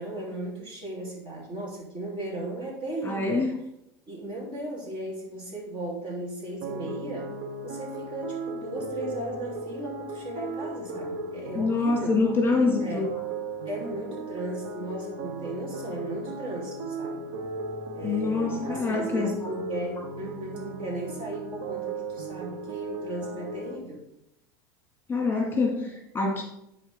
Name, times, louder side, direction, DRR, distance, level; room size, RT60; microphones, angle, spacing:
voice 1, 0.0-3.4 4.1-7.3 7.6-12.2 12.8-13.1 13.7-17.3 17.9-24.0, right 1 dB, 40° right, -3 dB, 3.2 m, -36 dB
voice 2, 3.0-3.5 11.6-13.1 18.0-19.3 25.1-26.4, left 3 dB, 15° left, -1 dB, 1.9 m, -25 dB
sound 1, 6.6-23.7, right 2 dB, 65° right, 0.9 m, -36 dB
10.5 x 4.2 x 3.6 m, 0.82 s
hypercardioid pair, 85°, 13 cm